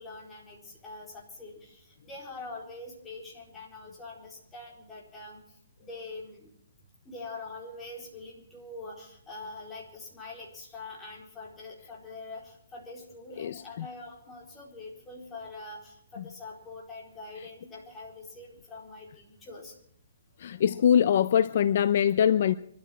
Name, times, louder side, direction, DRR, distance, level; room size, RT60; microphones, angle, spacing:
voice 1, 0.0-5.4 5.8-6.5 7.0-19.7, left 3 dB, 10° left, 4.4 m, -44 dB
voice 2, 20.4-22.6, left 9 dB, 50° left, 0.6 m, -23 dB
24.0 x 13.0 x 4.4 m
hypercardioid pair, 165°, 0 cm